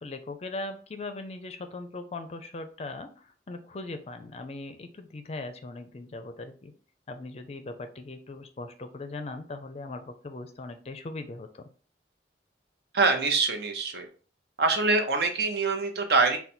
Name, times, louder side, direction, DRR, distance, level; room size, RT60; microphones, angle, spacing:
voice 1, 0.0-6.7 7.1-11.7, left 2 dB, 35° left, 8 dB, 0.4 m, -39 dB
voice 2, 12.9-14.1 14.6-16.4, right 3 dB, 65° right, 5 dB, 0.7 m, -24 dB
4.0 x 2.2 x 4.2 m, 0.41 s
head